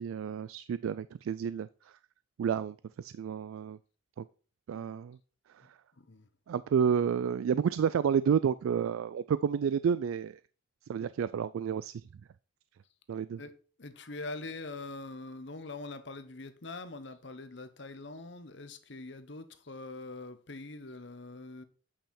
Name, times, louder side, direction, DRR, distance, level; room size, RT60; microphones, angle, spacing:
voice 1, 0.0-2.0 2.4-3.8 4.2-4.3 4.7-5.2 5.5-5.7 6.5-10.4 10.9-12.0 13.1-13.4, right 7 dB, 85° right, 0.3 m, -30 dB
voice 2, 6.0-6.3 13.4-13.5 13.8-21.6, left 3 dB, 60° left, 0.9 m, -43 dB
8.8 x 5.5 x 4.3 m
head